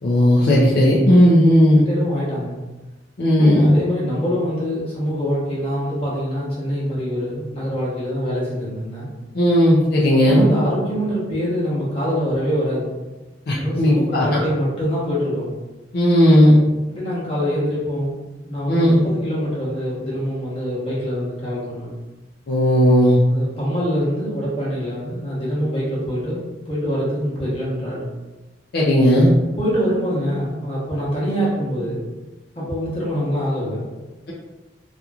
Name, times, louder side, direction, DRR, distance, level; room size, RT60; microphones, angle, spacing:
voice 1, 0.0-1.8 3.2-3.7 9.3-10.5 13.5-14.4 15.9-16.6 18.7-19.0 22.5-23.2 28.7-29.3, equal, 60° left, -6 dB, 0.5 m, -15 dB
voice 2, 1.8-2.6 3.4-9.1 10.3-12.9 13.6-15.5 16.9-18.2 18.4-21.9 23.3-28.1 29.5-32.0 32.5-33.9, equal, 35° left, -7 dB, 1.0 m, -24 dB
2.8 x 2.5 x 2.3 m, 1.1 s
head